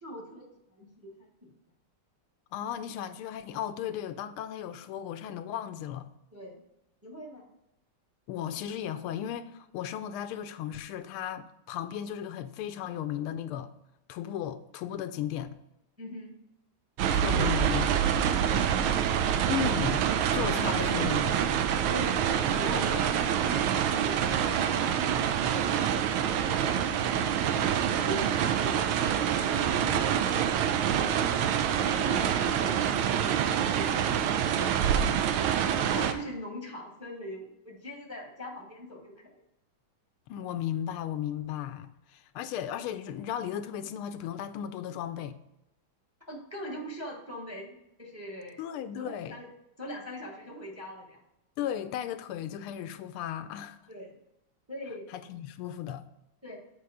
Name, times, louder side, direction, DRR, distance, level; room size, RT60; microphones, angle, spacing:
voice 1, 0.0-0.5 0.7-1.5 6.3-6.6 7.0-7.4 16.0-16.4 17.3-18.9 20.7-20.8 21.9-22.3 22.6-25.1 25.4-26.8 27.6-31.4 31.9-34.1 34.4-35.0 35.8-39.4 46.3-48.6 49.0-49.5 49.8-51.2 53.9-54.2 54.7-55.1 56.4-56.6, equal, 10° right, 0.9 m, -42 dB
voice 2, 2.5-6.1 8.3-13.7 14.1-15.6 17.1-17.8 19.5-20.1 20.3-21.4 40.3-45.4 48.6-49.4 51.6-53.8 55.1-56.0, left 10 dB, 85° left, 1.5 m, -35 dB
sound 1, 17.0-36.1, right 9 dB, 80° right, 1.5 m, -26 dB
8.3 x 4.7 x 4.9 m
omnidirectional pair, 2.4 m